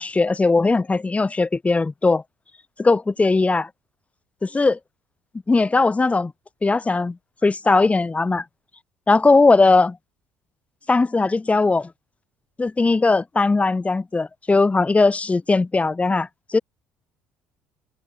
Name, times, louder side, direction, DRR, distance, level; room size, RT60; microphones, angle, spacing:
voice 1, 0.0-2.2 2.8-3.7 4.4-4.8 5.5-6.3 6.6-7.2 7.4-8.4 9.1-10.0 10.9-11.9 12.6-16.6, left 3 dB, 20° left, 6.1 m, -19 dB
open air
hypercardioid pair, 65°, 6 cm